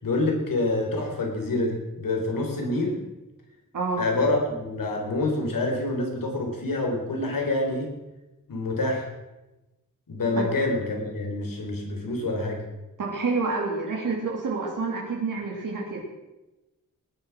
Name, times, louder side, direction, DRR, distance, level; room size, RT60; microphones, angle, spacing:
voice 1, 0.0-3.0 4.0-7.9 8.5-9.1 10.1-12.6, left 2 dB, 85° left, 2 dB, 4.1 m, -27 dB
voice 2, 13.0-16.0, right 4 dB, 70° right, -2 dB, 2.8 m, -28 dB
19.5 x 10.5 x 6.1 m, 1.0 s
wide cardioid pair, 160°, 33 cm